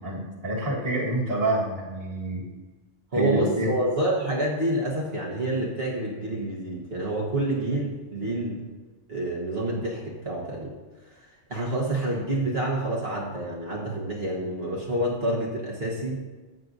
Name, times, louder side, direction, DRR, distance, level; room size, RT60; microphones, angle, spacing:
voice 1, 0.0-2.4 3.1-3.7, right 1 dB, 30° right, -4 dB, 1.6 m, -27 dB
voice 2, 3.1-8.6 9.1-10.7 11.5-16.2, right 1 dB, 55° right, -4 dB, 1.5 m, -28 dB
14.0 x 7.6 x 2.6 m, 1.2 s
omnidirectional pair, 1.2 m